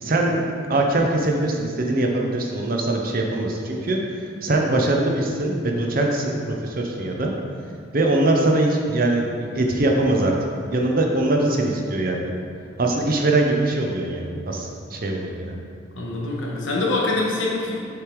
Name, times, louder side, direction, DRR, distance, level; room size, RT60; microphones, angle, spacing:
voice 1, 0.0-0.4 0.7-4.0 4.4-7.3 7.9-10.3 10.7-12.3 12.8-15.5, right 2 dB, 45° right, 1 dB, 0.6 m, -22 dB
voice 2, 15.9-17.8, left 2 dB, 70° left, -3 dB, 1.1 m, -24 dB
6.7 x 3.4 x 4.6 m, 2.2 s
head